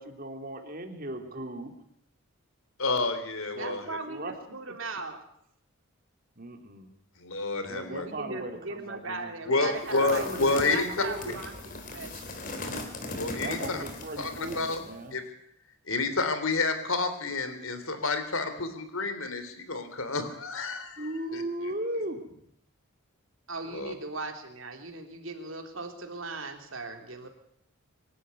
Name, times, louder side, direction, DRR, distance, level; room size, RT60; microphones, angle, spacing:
voice 1, 0.0-1.7 3.5-4.4 6.4-6.9 7.7-9.3 10.0-11.4 13.4-15.1 21.0-22.2, right 1 dB, 40° right, 5 dB, 3.0 m, -37 dB
voice 2, 2.8-3.8 7.2-8.1 9.4-10.9 13.1-13.8 14.2-14.8 15.1-15.2 15.9-21.7 23.7-23.9, left 3 dB, 70° left, 9 dB, 3.3 m, -29 dB
voice 3, 3.6-5.2 8.0-12.5 23.5-27.3, right 3 dB, 60° right, 5 dB, 3.4 m, -39 dB
sound 1, 9.9-14.9, left 2 dB, 40° left, 3.3 m, -39 dB
24.5 x 13.0 x 9.7 m, 0.72 s
head